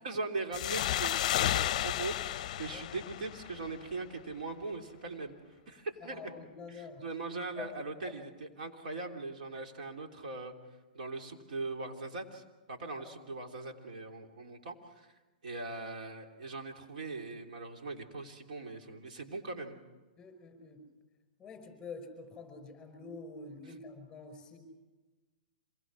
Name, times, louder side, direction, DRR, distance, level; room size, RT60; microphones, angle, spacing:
voice 1, 0.0-5.4 5.7-6.3 6.7-10.5 10.9-12.4 12.7-15.1 15.4-19.8, right 3 dB, 70° right, 3 dB, 3.1 m, -40 dB
sound 1, 0.5-3.9, left 12 dB, 50° left, 0.6 m, -32 dB
voice 2, 6.1-7.1 7.5-7.7 8.0-8.1 13.0-13.2 20.2-20.9 21.4-24.6, left 4 dB, 10° left, 8 dB, 5.3 m, -47 dB
26.5 x 20.5 x 6.3 m, 1.2 s
hypercardioid pair, 155°, 5 cm